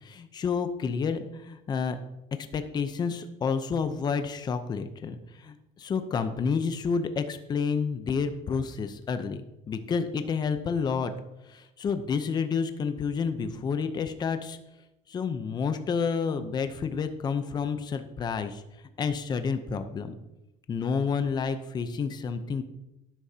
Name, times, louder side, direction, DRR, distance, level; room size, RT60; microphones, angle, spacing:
voice 1, 0.0-2.0 2.5-9.4 9.7-11.1 11.5-14.6 15.1-18.6 19.0-20.1 20.7-22.6, left 5 dB, 30° left, 9 dB, 0.7 m, -29 dB
12.5 x 10.5 x 2.8 m, 0.90 s
cardioid pair, 140°, 14 cm